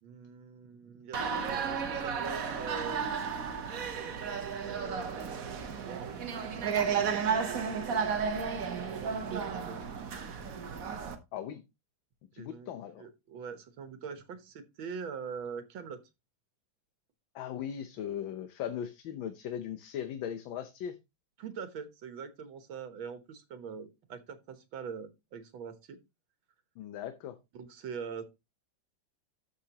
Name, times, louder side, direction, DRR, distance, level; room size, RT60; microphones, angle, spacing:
voice 1, 0.0-3.7 4.6-5.4 5.8-7.6 8.6-9.8 12.4-12.7 13.0-16.0 21.4-26.0 27.5-28.2, right 6 dB, 85° right, 2.0 m, -43 dB
sound 1, 1.1-11.2, right 6 dB, 50° right, 1.4 m, -33 dB
voice 2, 11.3-11.6 12.3-13.0 17.3-20.9 26.8-27.4, left 9 dB, 80° left, 1.6 m, -38 dB
13.0 x 5.6 x 2.9 m
omnidirectional pair, 2.1 m